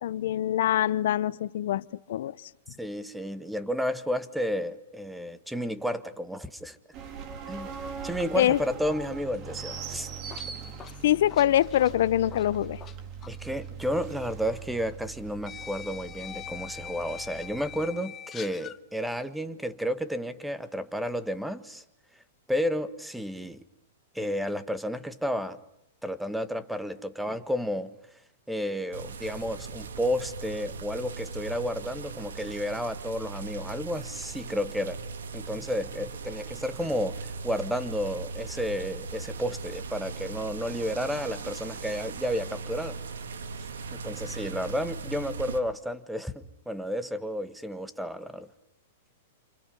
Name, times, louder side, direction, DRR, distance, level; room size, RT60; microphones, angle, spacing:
voice 1, 0.0-2.5 8.3-8.6 11.0-12.8, left 12 dB, 65° left, 1.0 m, -24 dB
voice 2, 2.8-6.8 7.5-7.7 8.0-10.1 13.3-21.8 22.5-23.6 24.1-25.6 26.0-27.9 28.5-35.0 35.3-43.0 43.9-48.5, equal, 5° right, 1.6 m, -32 dB
sound 1, 6.9-17.9, right 6 dB, 40° right, 3.6 m, -41 dB
sound 2, 9.9-12.9 13.2-13.4 14.5-14.6 15.4-18.8, left 9 dB, 25° left, 0.9 m, -43 dB
sound 3, 28.9-45.6, right 4 dB, 85° right, 2.4 m, -39 dB
29.0 x 28.0 x 5.5 m
hypercardioid pair, 130°, 0 cm